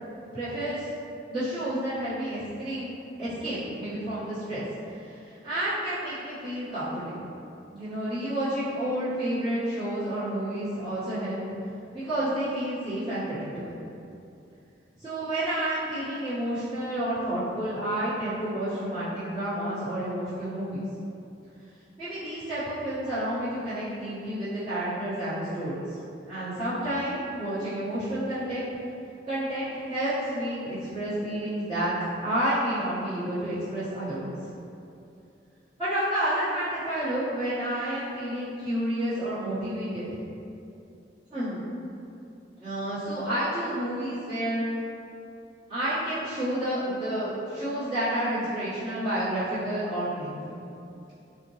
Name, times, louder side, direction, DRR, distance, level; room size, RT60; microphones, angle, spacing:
voice 1, 0.3-0.9 1.3-2.9 3.2-4.6 5.0-7.3 7.7-11.4 11.9-13.8 15.0-20.8 22.0-26.0 26.3-28.6 29.3-31.9 32.2-34.3 35.8-40.1 41.3-41.7 42.6-44.6 45.7-50.6, right 1 dB, 25° right, -18 dB, 1.2 m, -30 dB
4.2 x 2.1 x 3.0 m, 2.7 s
head